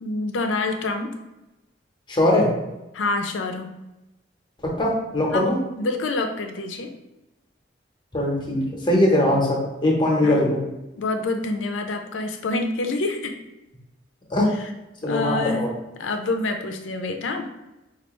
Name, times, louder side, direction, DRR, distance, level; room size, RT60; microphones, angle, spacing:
voice 1, 0.0-1.1 2.9-3.7 5.3-5.5 5.8-6.9 10.2-10.5 11.0-13.4 15.0-15.6 16.0-17.5, left 2 dB, 85° left, 5 dB, 0.5 m, -27 dB
voice 2, 2.1-2.5 4.6-5.6 8.1-10.6 14.3-14.5 15.0-15.7, left 1 dB, 25° left, -2 dB, 0.8 m, -21 dB
4.3 x 2.4 x 3.0 m, 0.98 s
head